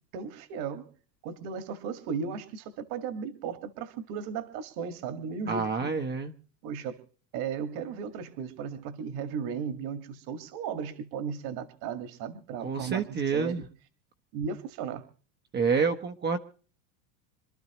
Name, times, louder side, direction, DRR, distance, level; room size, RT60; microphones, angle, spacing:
voice 1, 0.1-0.9 1.2-5.9 6.6-6.9 7.3-13.6 14.3-15.1, right 6 dB, 50° right, 9 dB, 1.8 m, -36 dB
voice 2, 5.5-6.3 12.6-13.6 15.5-16.4, right 5 dB, 20° right, 6 dB, 0.9 m, -28 dB
26.5 x 12.0 x 3.0 m, 0.40 s
supercardioid pair, 135°, 50 cm